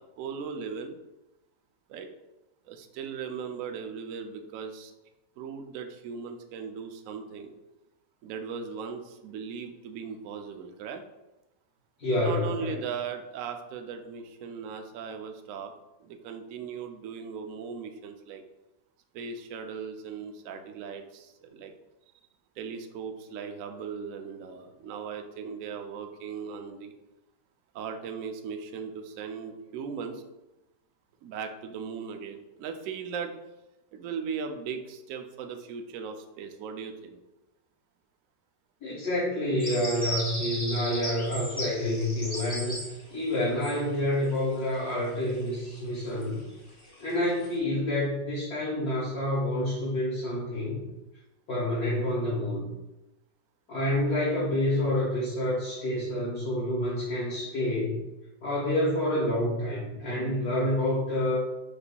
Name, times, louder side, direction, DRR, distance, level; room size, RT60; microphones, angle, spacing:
voice 1, 0.2-1.0 1.9-2.1 2.7-4.9 5.4-7.5 8.2-11.0 12.2-15.7 16.0-18.4 19.1-21.7 22.6-26.9 27.7-30.2 31.2-33.4 33.9-37.2, right 6 dB, 75° right, 5 dB, 0.7 m, -38 dB
voice 2, 12.0-12.7 38.8-42.8 43.1-46.4 47.0-50.8 51.5-52.7 53.7-58.0 58.4-61.5, left 1 dB, 60° left, -9 dB, 1.8 m, -28 dB
sound 1, 39.6-44.8 45.0-46.4 46.7-47.5, equal, 15° left, 0.9 m, -36 dB
6.5 x 2.8 x 2.2 m, 1.0 s
omnidirectional pair, 1.9 m